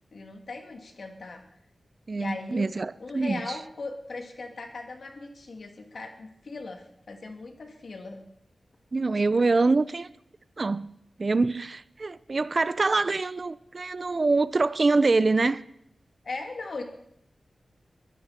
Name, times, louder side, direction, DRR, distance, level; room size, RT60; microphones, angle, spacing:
voice 1, 0.1-1.4 2.1-2.7 3.0-8.2 16.2-16.8, left 3 dB, 70° left, 2.8 m, -38 dB
voice 2, 2.1-3.6 8.9-10.1 10.6-10.9 11.2-15.6, right 3 dB, 50° right, 0.6 m, -25 dB
22.5 x 14.5 x 4.4 m
wide cardioid pair, 75°, 0 cm